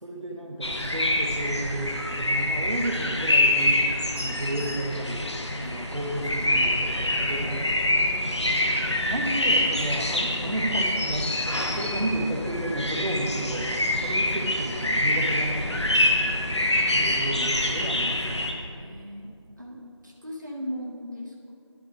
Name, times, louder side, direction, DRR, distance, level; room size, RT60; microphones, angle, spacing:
voice 1, 0.0-3.9 4.2-5.2 5.7-7.9 8.8-15.8 16.9-18.2, right 1 dB, 75° right, 1 dB, 1.1 m, -32 dB
sound 1, 0.6-18.5, left 1 dB, 65° left, 0.9 m, -26 dB
voice 2, 18.8-19.3 19.6-19.8 20.0-21.5, equal, 40° right, -4 dB, 0.8 m, -37 dB
11.5 x 4.5 x 3.4 m, 2.5 s
figure-of-eight pair, 180°, 16 cm